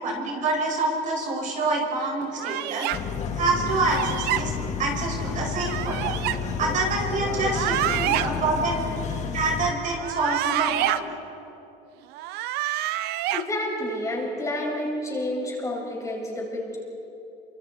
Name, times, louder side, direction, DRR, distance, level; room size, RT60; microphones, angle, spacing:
voice 1, 0.0-2.9 3.3-4.5 4.8-6.2 6.6-8.9 9.3-11.2, right 3 dB, 50° right, -1 dB, 5.8 m, -26 dB
sound 1, 2.4-3.0 3.8-4.4 5.5-6.4 7.4-8.3 9.9-11.0 12.1-13.4, right 14 dB, 80° right, 0.8 m, -27 dB
sound 2, 2.9-9.7, left 6 dB, 45° left, 2.0 m, -31 dB
voice 2, 13.3-16.8, left 1 dB, 20° left, -2 dB, 6.1 m, -29 dB
28.0 x 25.5 x 4.3 m, 3.0 s
cardioid pair, 125°, 16 cm